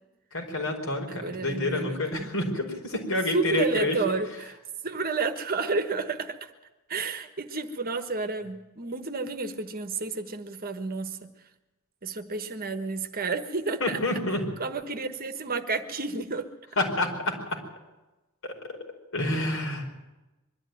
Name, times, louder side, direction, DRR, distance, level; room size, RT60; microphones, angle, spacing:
voice 1, 0.3-4.0 13.8-14.4 16.8-17.3 18.4-18.5 19.1-20.0, left 1 dB, 65° left, 1 dB, 5.0 m, -28 dB
voice 2, 1.1-2.3 3.3-4.5 4.8-6.4 6.9-11.3 12.0-14.0 14.6-16.5, right 4 dB, 40° right, 8 dB, 1.3 m, -31 dB
22.5 x 13.0 x 9.3 m, 1.1 s
head